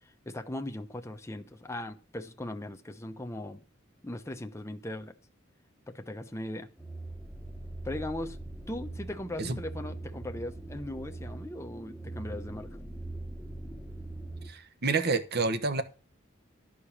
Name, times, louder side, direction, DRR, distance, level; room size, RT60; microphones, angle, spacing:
voice 1, 0.3-3.6 4.0-5.1 5.9-6.7 7.8-8.4 8.7-12.8, left 1 dB, 15° left, 0.8 m, -38 dB
sound 1, 6.8-14.5, right 2 dB, 5° right, 1.2 m, -41 dB
voice 2, 14.5-15.8, right 4 dB, 55° right, 1.1 m, -28 dB
12.5 x 5.0 x 7.2 m
head